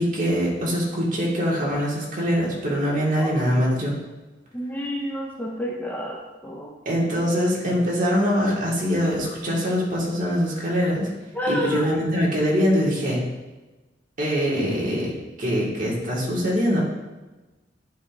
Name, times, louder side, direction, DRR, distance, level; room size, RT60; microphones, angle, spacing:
voice 1, 0.0-3.9 6.9-11.1 11.5-13.2 14.2-15.1 15.4-16.8, equal, 45° right, -4 dB, 1.9 m, -23 dB
voice 2, 4.5-6.2 6.4-6.8 11.3-12.0, equal, 10° left, -2 dB, 0.6 m, -29 dB
10.0 x 4.9 x 2.6 m, 1.2 s
head